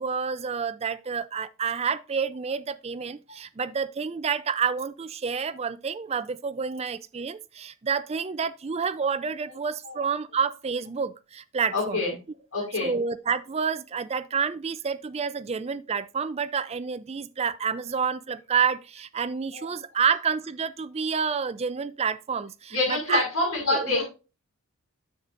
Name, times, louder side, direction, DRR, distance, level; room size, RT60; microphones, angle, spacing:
voice 1, 0.0-12.0 12.8-23.2 23.7-24.0, right 6 dB, 30° right, 0.4 m, -29 dB
voice 2, 11.7-12.1 12.5-12.9 19.5-19.7 22.7-24.0, left 2 dB, 70° left, 5.5 m, -26 dB
9.8 x 7.3 x 2.5 m
head